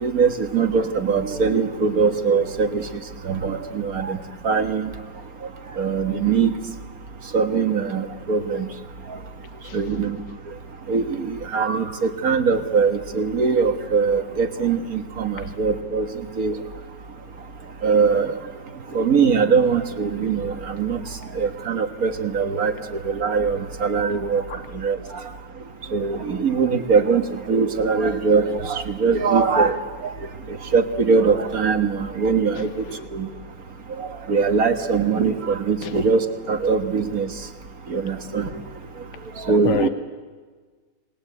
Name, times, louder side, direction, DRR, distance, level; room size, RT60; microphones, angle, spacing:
voice 1, 0.0-2.8 3.3-4.2 4.4-4.9 5.8-6.5 7.3-8.7 9.1-9.2 9.7-10.2 10.9-16.1 16.4-16.5 17.8-18.3 18.9-21.0 21.3-22.7 23.0-24.4 24.7-25.0 25.9-27.2 27.5-29.8 30.0-30.1 30.5-32.8 33.1-33.3 34.0-37.3 37.9-38.5 39.4-39.9, right 5 dB, 50° right, 1.9 m, -21 dB
voice 2, 9.6-9.8 15.4-15.5 24.5-24.6 32.6-32.7 35.8-35.9 39.6-39.9, left 8 dB, 75° left, 1.5 m, -27 dB
27.5 x 20.0 x 8.1 m
omnidirectional pair, 2.0 m